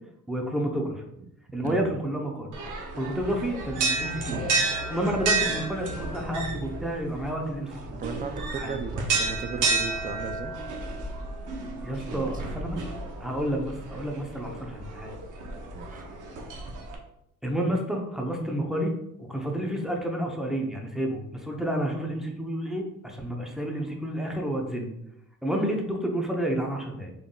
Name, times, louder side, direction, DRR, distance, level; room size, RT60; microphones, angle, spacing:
voice 1, 0.3-1.0 1.5-2.5 2.9-4.4 4.9-8.0 8.6-8.7 11.8-12.8 13.2-15.1 17.4-18.9 19.2-24.9 25.4-27.1, right 1 dB, ahead, 0 dB, 0.7 m, -30 dB
sound 1, 2.5-16.9, right 3 dB, 80° right, 0.8 m, -31 dB
voice 2, 8.0-10.5 12.1-12.6 15.7-16.1, right 4 dB, 30° right, 7 dB, 0.4 m, -36 dB
3.8 x 3.5 x 2.3 m, 0.79 s
cardioid pair, 90°, 30 cm